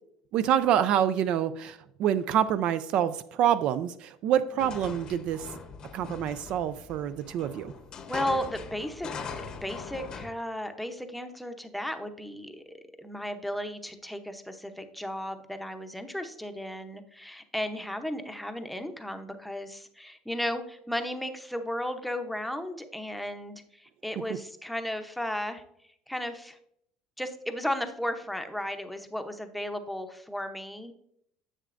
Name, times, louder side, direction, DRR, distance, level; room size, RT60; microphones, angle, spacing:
voice 1, 0.3-5.5 5.9-7.7, right 10 dB, 55° right, 13 dB, 0.4 m, -26 dB
sound 1, 4.6-10.3, left 5 dB, 35° left, 0.8 m, -41 dB
voice 2, 8.1-25.6 26.1-26.6 27.2-30.9, equal, ahead, 6 dB, 0.7 m, -35 dB
9.9 x 7.4 x 2.5 m, 0.71 s
cardioid pair, 140°, 2 cm